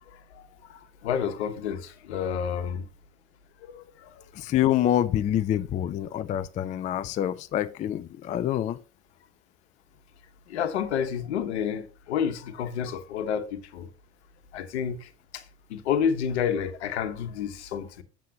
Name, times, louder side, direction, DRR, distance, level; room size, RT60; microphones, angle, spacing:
voice 1, 0.1-2.8 3.6-4.2 10.5-13.9 14.5-15.4 15.7-18.0, left 8 dB, 70° left, 1.1 m, -30 dB
voice 2, 4.3-8.8, left 11 dB, 20° left, 0.3 m, -26 dB
7.6 x 7.4 x 2.8 m
hypercardioid pair, 80°, 34 cm